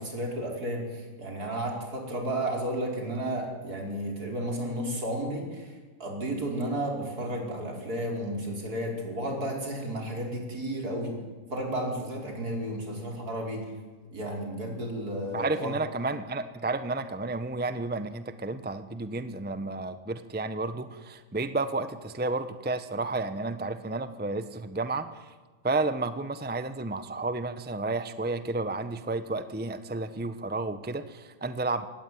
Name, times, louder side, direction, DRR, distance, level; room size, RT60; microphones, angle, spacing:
voice 1, 0.0-5.7 6.0-11.1 11.5-13.6 14.1-15.7, right 1 dB, 45° right, 1 dB, 5.6 m, -32 dB
voice 2, 15.3-25.1 25.6-31.9, right 3 dB, 15° right, 11 dB, 0.4 m, -31 dB
24.0 x 18.0 x 9.4 m, 1.4 s
omnidirectional pair, 2.3 m